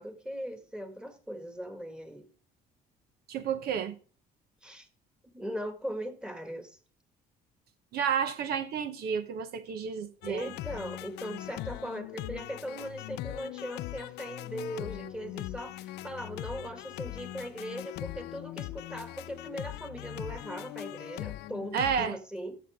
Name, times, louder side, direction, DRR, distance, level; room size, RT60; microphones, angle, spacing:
voice 1, 0.0-2.3 4.6-4.9 5.2-6.8 10.2-22.6, equal, 5° right, 1.8 m, -39 dB
voice 2, 3.3-3.9 7.9-10.5 21.7-22.2, right 7 dB, 70° right, 0.9 m, -31 dB
sound 1, 10.2-22.1, left 16 dB, 80° left, 0.5 m, -40 dB
12.5 x 6.9 x 3.6 m
cardioid pair, 110°, 17 cm